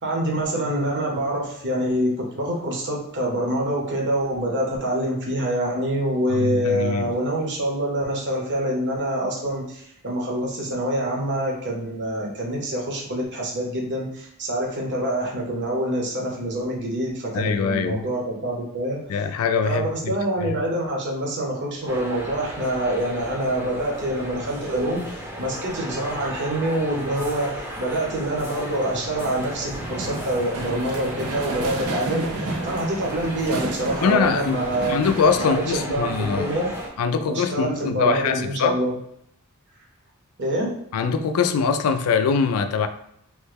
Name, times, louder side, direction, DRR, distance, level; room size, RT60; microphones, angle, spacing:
voice 1, 0.0-19.0 19.7-35.0 35.4-36.7 37.2-39.0 40.4-40.7, right 1 dB, 55° right, -2 dB, 0.9 m, -26 dB
voice 2, 6.3-7.1 17.3-18.0 19.1-20.2 20.4-20.6 34.0-36.5 37.0-38.8 40.9-42.9, left 5 dB, 80° left, 8 dB, 0.3 m, -23 dB
sound 1, 21.9-36.9, equal, 10° right, 0.6 m, -35 dB
sound 2, 29.2-35.5, right 2 dB, 75° right, 0.5 m, -32 dB
3.1 x 2.2 x 3.3 m, 0.73 s
head